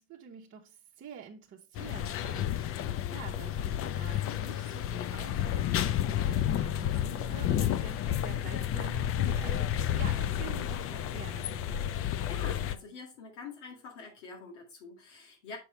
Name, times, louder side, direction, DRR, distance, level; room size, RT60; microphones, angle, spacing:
voice 1, 0.0-11.9, right 7 dB, 35° right, 1.0 m, -48 dB
sound 1, 1.8-12.8, left 11 dB, 40° left, 0.6 m, -31 dB
voice 2, 12.3-15.6, left 4 dB, 85° left, 2.1 m, -45 dB
6.9 x 6.3 x 3.2 m
hypercardioid pair, 95°, 35 cm